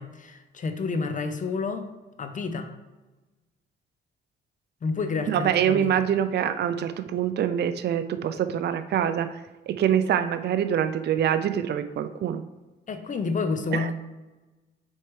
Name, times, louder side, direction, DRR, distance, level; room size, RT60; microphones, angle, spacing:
voice 1, 0.0-1.9 2.2-2.7 4.8-6.0 12.9-13.9, left 4 dB, 40° left, 8 dB, 0.8 m, -29 dB
voice 2, 5.3-9.4 9.7-12.4 13.7-13.9, right 9 dB, 55° right, 10 dB, 0.5 m, -25 dB
7.1 x 4.6 x 3.3 m, 1.2 s
cardioid pair, 90°, 20 cm